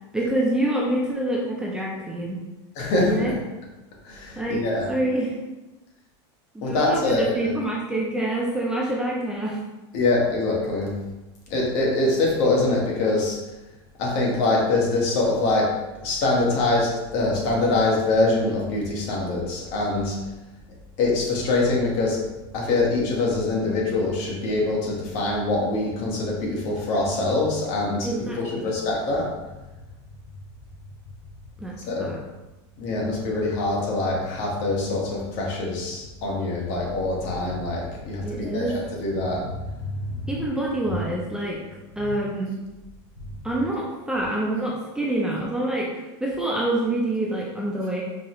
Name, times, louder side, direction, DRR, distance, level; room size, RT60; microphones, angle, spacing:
voice 1, 0.1-2.4 3.1-3.3 4.4-5.3 6.5-9.6 28.0-28.7 31.6-32.2 38.2-38.8 40.3-41.6 42.0-42.6 43.4-48.0, right 1 dB, 5° right, -4 dB, 0.4 m, -26 dB
voice 2, 2.7-3.3 4.0-4.9 6.6-7.5 9.9-11.0 11.5-13.4 14.0-15.7 16.0-20.2 21.0-22.2 22.5-28.1 28.6-29.3 31.9-32.1 32.8-39.5 40.2-40.3, left 2 dB, 50° left, -2 dB, 1.3 m, -24 dB
4.8 x 2.8 x 3.0 m, 1.1 s
supercardioid pair, 145°, 15 cm